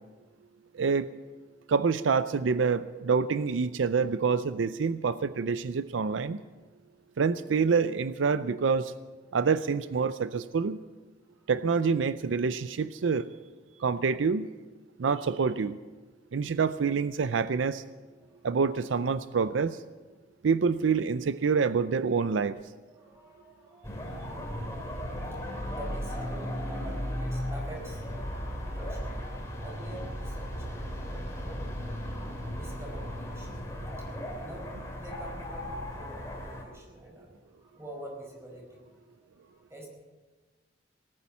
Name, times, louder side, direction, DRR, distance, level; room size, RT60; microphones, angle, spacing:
voice 1, 1.7-6.4 7.2-8.9 9.3-10.8 11.5-13.3 13.8-14.5 15.0-15.8 16.3-17.8 18.4-19.8 20.4-22.6, right 5 dB, 85° right, 14 dB, 0.5 m, -27 dB
voice 2, 22.9-24.6 25.7-39.9, right 1 dB, 15° right, -1 dB, 4.8 m, -47 dB
sound 1, 23.8-36.6, equal, 15° left, 2.8 m, -36 dB
18.5 x 9.8 x 7.2 m, 1.3 s
head